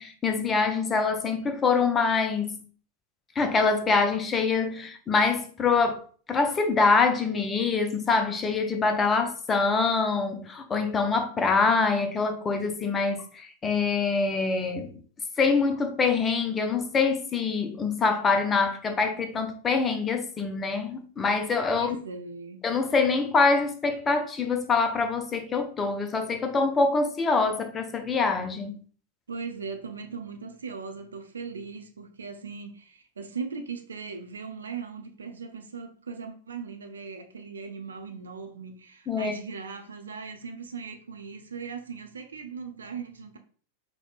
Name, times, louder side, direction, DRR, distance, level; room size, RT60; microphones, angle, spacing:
voice 1, 0.0-2.6 3.4-14.9 15.4-22.0 22.6-28.7 39.1-39.3, left 4 dB, 20° left, 0.4 m, -25 dB
voice 2, 21.7-22.6 29.3-43.4, right 5 dB, 70° right, 0.4 m, -39 dB
4.2 x 2.1 x 2.3 m
figure-of-eight pair, 90°, 0 cm